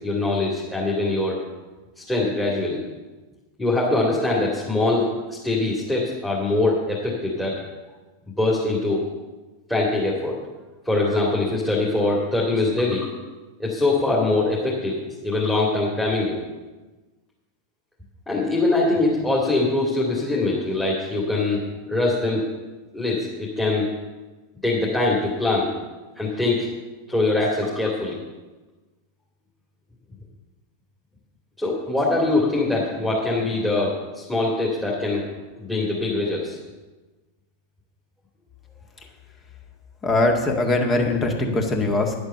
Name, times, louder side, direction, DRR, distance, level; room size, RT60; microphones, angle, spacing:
voice 1, 0.0-1.4 2.0-2.8 3.6-7.6 8.3-9.0 9.7-10.4 10.8-13.1 13.6-16.4 18.3-21.6 21.9-22.4 22.9-23.9 24.6-25.7 26.2-26.7 27.1-28.2 31.6-35.3 35.5-36.6, left 2 dB, 5° left, -3 dB, 2.4 m, -23 dB
voice 2, 40.0-42.2, left 2 dB, 25° left, 3 dB, 1.9 m, -21 dB
10.5 x 8.0 x 6.9 m, 1.2 s
figure-of-eight pair, 90°, 0 cm